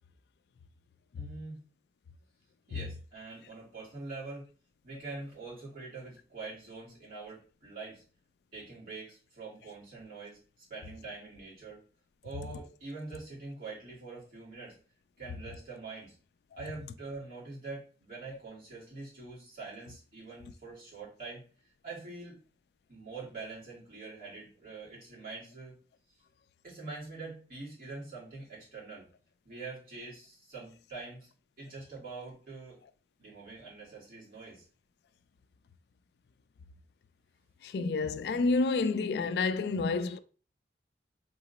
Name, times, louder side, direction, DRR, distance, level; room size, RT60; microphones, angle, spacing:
voice 1, 1.2-1.6 2.7-4.5 4.8-8.0 8.5-11.8 12.2-14.8 15.2-16.1 16.6-21.4 21.8-22.4 22.9-25.8 26.6-29.1 29.4-31.3 31.6-32.8 33.2-34.7, right 3 dB, 55° right, 2.4 m, -44 dB
voice 2, 37.6-40.2, left 3 dB, 65° left, 0.3 m, -29 dB
3.9 x 3.0 x 4.0 m
head